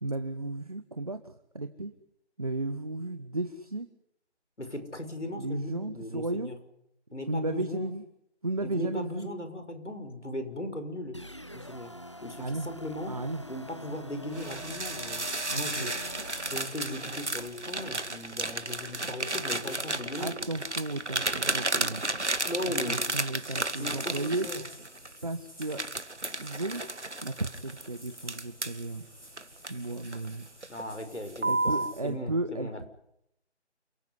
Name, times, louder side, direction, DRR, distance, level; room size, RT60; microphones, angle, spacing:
voice 1, 0.0-1.9 2.4-3.9 5.3-6.5 7.3-8.0 8.4-9.3 12.4-12.7 13.1-13.4 15.5-15.9 20.2-22.0 22.6-24.5 25.2-25.9 26.3-26.8 27.2-29.0 29.7-30.4 31.5-32.8, right 2 dB, 35° right, 11 dB, 1.3 m, -34 dB
voice 2, 4.6-6.6 7.1-7.9 8.6-11.2 11.5-11.9 12.2-13.2 13.5-15.2 15.5-16.0 16.5-20.3 21.8-22.0 22.5-23.1 23.8-24.6 30.7-32.9, left 1 dB, 85° left, 8 dB, 6.2 m, -38 dB
sound 1, 11.1-16.6, equal, 25° left, 0.9 m, -44 dB
sound 2, 14.3-25.1 25.6-28.8 29.4-30.3 30.6-30.9 31.4-31.9, right 2 dB, 80° right, 2.3 m, -33 dB
sound 3, 23.3-32.0, equal, ahead, 1.2 m, -52 dB
28.5 x 16.0 x 9.7 m, 0.77 s
figure-of-eight pair, 165°, 34 cm